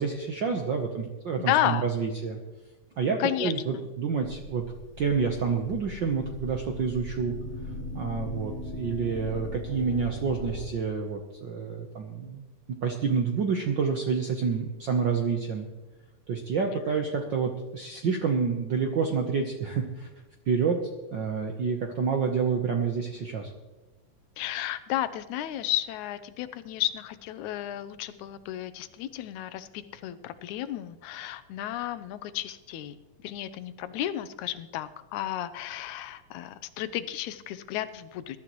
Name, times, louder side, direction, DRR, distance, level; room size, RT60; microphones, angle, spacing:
voice 1, 0.0-2.4 3.0-4.6 5.0-7.3 7.9-12.4 12.8-15.7 16.3-20.1 20.5-20.8 21.1-23.5, right 5 dB, 70° right, 3 dB, 1.1 m, -28 dB
voice 2, 1.5-1.9 3.2-3.8 24.4-38.4, left 12 dB, 85° left, 12 dB, 2.1 m, -32 dB
sound 1, 4.2-10.7, left 1 dB, 35° left, 1.2 m, -39 dB
21.5 x 12.0 x 3.1 m, 1.2 s
omnidirectional pair, 3.3 m